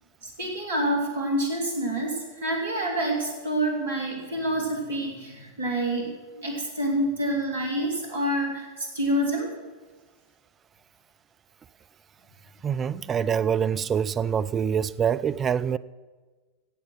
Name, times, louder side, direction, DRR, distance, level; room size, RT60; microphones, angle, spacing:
voice 1, 0.2-9.5, right 1 dB, 60° right, 3.2 m, -27 dB
voice 2, 12.6-15.8, right 7 dB, 25° right, 0.4 m, -25 dB
15.0 x 8.1 x 6.1 m
figure-of-eight pair, 90°, 0 cm